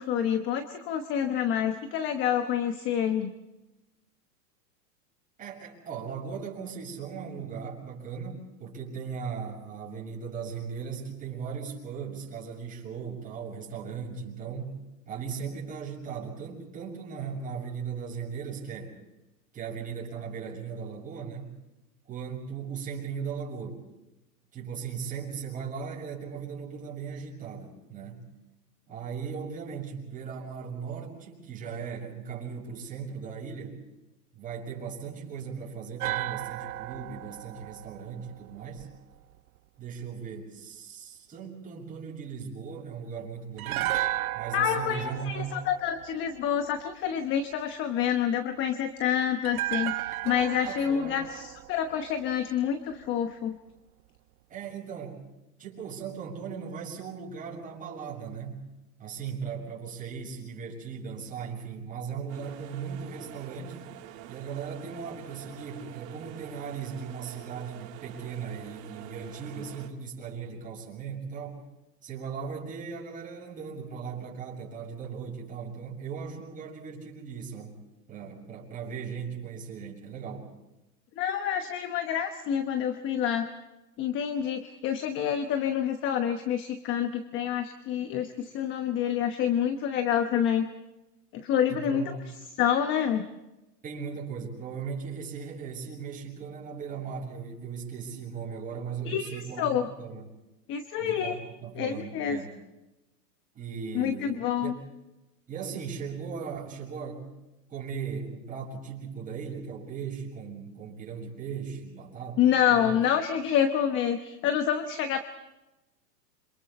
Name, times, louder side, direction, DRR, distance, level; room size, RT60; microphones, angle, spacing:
voice 1, 0.0-3.3 44.5-53.6 81.2-83.5 84.0-90.7 91.3-92.2 92.6-93.3 99.1-99.9 100.7-101.4 101.8-102.4 103.9-104.7 112.4-115.2, left 9 dB, 25° left, 8 dB, 1.1 m, -27 dB
voice 2, 5.4-14.8 15.0-18.9 19.5-21.5 22.1-23.8 24.5-28.3 28.9-33.8 34.3-38.9 39.8-43.9 44.3-45.6 50.6-51.2 54.5-55.2 55.6-58.6 59.0-63.9 64.3-71.6 72.0-77.7 78.1-80.5 91.7-92.3 93.8-100.3 101.0-102.5 103.5-104.7 105.5-107.2 107.7-113.0, right 6 dB, 15° right, -3 dB, 6.7 m, -38 dB
sound 1, 36.0-39.2 43.6-46.8 49.4-52.7 52.9-53.1, right 16 dB, 65° right, 0.7 m, -35 dB
sound 2, 62.3-69.9, right 12 dB, 45° right, 2.8 m, -46 dB
29.0 x 26.5 x 4.3 m, 1.0 s
hypercardioid pair, 145°, 48 cm